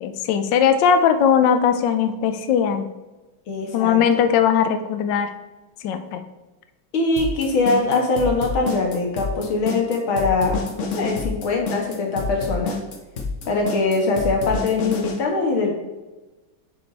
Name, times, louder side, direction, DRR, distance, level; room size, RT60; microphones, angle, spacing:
voice 1, 0.0-2.9 3.7-5.3 5.8-6.2, left 7 dB, 70° left, 8 dB, 1.3 m, -19 dB
voice 2, 3.5-4.0 6.9-12.8 13.5-15.7, left 3 dB, 90° left, 1 dB, 2.3 m, -22 dB
sound 1, 7.2-15.2, left 4 dB, 45° left, 1.2 m, -28 dB
7.9 x 4.9 x 4.1 m, 1.1 s
omnidirectional pair, 2.2 m